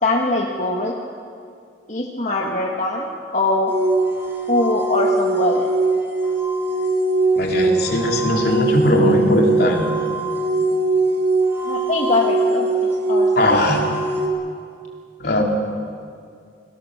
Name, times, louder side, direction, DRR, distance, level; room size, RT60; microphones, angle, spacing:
voice 1, 0.0-0.9 1.9-3.7 4.5-5.7 11.7-12.7 13.1-13.8, left 2 dB, 40° left, -1 dB, 1.9 m, -22 dB
sound 1, 3.7-14.3, right 2 dB, 15° right, 4.3 m, -21 dB
voice 2, 7.4-9.9 13.4-13.8 15.2-15.4, left 1 dB, 60° left, 0 dB, 3.6 m, -19 dB
29.0 x 20.0 x 6.7 m, 2.3 s
head